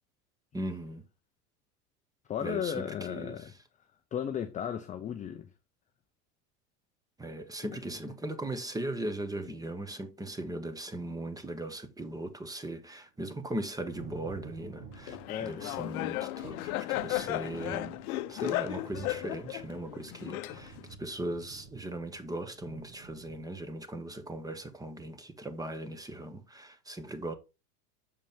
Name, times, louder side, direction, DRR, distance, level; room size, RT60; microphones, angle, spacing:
voice 1, 0.5-1.0 2.4-3.5 7.2-18.0 18.3-27.3, right 1 dB, 10° right, 0.9 m, -38 dB
voice 2, 2.3-3.5 4.1-5.5 7.6-7.8 15.3-15.9, left 9 dB, 15° left, 0.4 m, -35 dB
Thunder, 13.4-23.4, right 4 dB, 60° right, 2.0 m, -50 dB
Laughter, 15.1-20.9, left 18 dB, 65° left, 0.7 m, -35 dB
6.9 x 5.1 x 3.6 m
hypercardioid pair, 110°, 46 cm